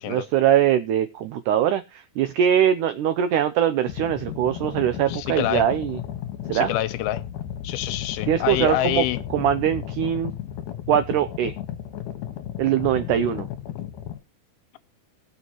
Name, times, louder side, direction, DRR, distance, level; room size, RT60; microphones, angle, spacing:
voice 1, 0.1-6.0 6.5-6.7 8.3-9.1 9.3-10.3 10.9-11.6 12.6-13.5, right 10 dB, 90° right, 1.7 m, -22 dB
sound 1, 3.9-14.2, left 10 dB, 65° left, 2.4 m, -34 dB
voice 2, 5.1-5.6 6.5-7.2 7.6-9.2, left 14 dB, 80° left, 2.6 m, -26 dB
20.0 x 6.8 x 3.0 m
omnidirectional pair, 4.4 m